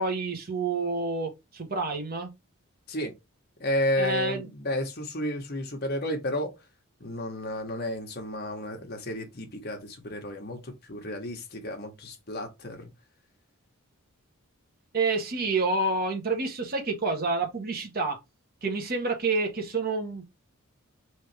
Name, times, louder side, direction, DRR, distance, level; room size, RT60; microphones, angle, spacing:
voice 1, 0.0-2.3 4.0-4.4 14.9-18.2 18.6-20.2, right 3 dB, 45° right, 1.1 m, -28 dB
voice 2, 3.6-6.5 7.0-12.9, left 1 dB, 45° left, 1.3 m, -32 dB
4.1 x 3.4 x 3.3 m
head